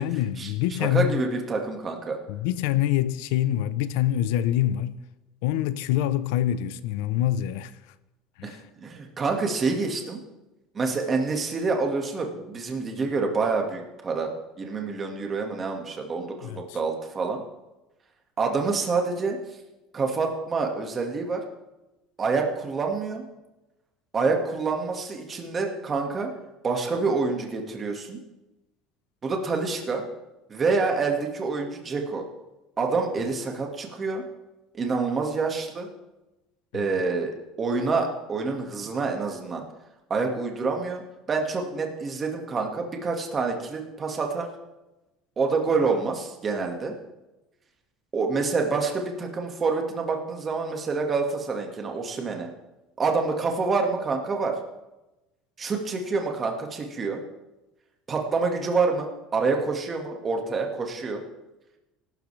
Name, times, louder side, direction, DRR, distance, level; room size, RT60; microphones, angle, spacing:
voice 1, 0.0-1.2 2.3-5.0 5.4-7.7 8.4-8.6 16.4-16.6 36.7-36.9, left 12 dB, 85° left, 0.7 m, -25 dB
voice 2, 0.8-2.2 8.4-8.6 8.8-10.2 10.7-17.4 18.4-19.4 19.9-21.4 22.2-23.2 24.1-26.3 26.6-28.2 29.2-30.0 30.5-32.2 32.8-34.2 34.7-35.9 36.7-37.3 37.6-39.7 40.1-41.0 41.3-44.5 45.4-46.9 48.1-52.5 53.0-54.6 55.6-57.2 58.1-61.2, right 4 dB, 20° right, 1.9 m, -27 dB
24.0 x 12.5 x 3.4 m
cardioid pair, 165°, 0 cm